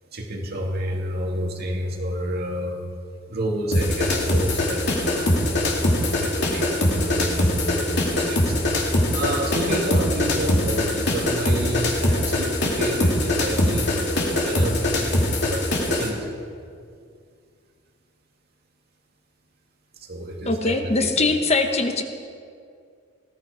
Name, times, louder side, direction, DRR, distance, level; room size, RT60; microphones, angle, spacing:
voice 1, 0.1-2.8 3.3-5.3 6.0-8.5 9.1-15.1 15.4-16.2 20.1-21.1, right 1 dB, 55° right, 0 dB, 2.3 m, -29 dB
sound 1, 3.7-16.1, left 1 dB, 60° left, 2.8 m, -22 dB
voice 2, 20.4-22.0, left 3 dB, 35° left, 6 dB, 1.0 m, -22 dB
19.5 x 14.5 x 5.0 m, 2.2 s
head